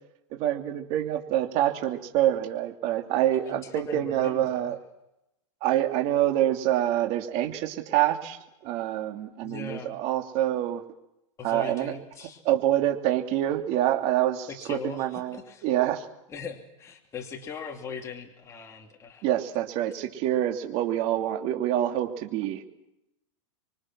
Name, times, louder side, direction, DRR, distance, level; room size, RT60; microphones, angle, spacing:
voice 1, 0.3-4.8 5.6-8.4 8.6-10.8 11.4-11.9 12.4-15.4 15.6-16.0 19.2-22.6, right 12 dB, 40° right, 4 dB, 3.0 m, -26 dB
voice 2, 3.5-4.7 9.4-10.0 11.4-12.4 14.5-15.7 16.3-19.3, left 5 dB, 15° left, 2 dB, 2.8 m, -40 dB
26.0 x 24.0 x 6.2 m, 0.86 s
supercardioid pair, 150°, 17 cm